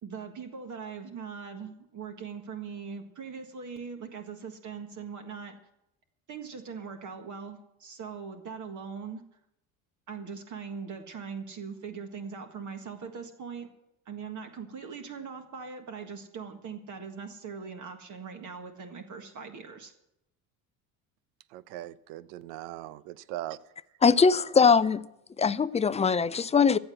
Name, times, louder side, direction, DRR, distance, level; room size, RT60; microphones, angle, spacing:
voice 1, 0.0-5.6 6.3-9.2 10.1-13.7 14.0-19.9, right 6 dB, 45° right, 5 dB, 1.7 m, -41 dB
voice 2, 21.5-23.6, right 14 dB, 80° right, 18 dB, 0.7 m, -39 dB
voice 3, 24.0-25.1 25.4-26.8, left 5 dB, 15° left, 16 dB, 0.4 m, -21 dB
14.5 x 7.9 x 7.9 m, 0.83 s
supercardioid pair, 85°, 40 cm